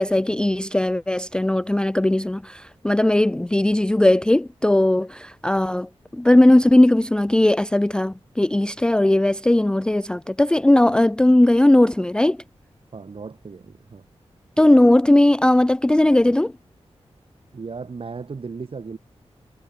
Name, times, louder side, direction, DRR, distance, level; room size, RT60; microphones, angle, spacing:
voice 1, 0.0-12.4 14.6-16.5, left 1 dB, 10° left, 0.4 m, -18 dB
voice 2, 12.9-14.0 17.5-19.0, right 4 dB, 55° right, 3.9 m, -36 dB
wide cardioid pair, 115°, 11 cm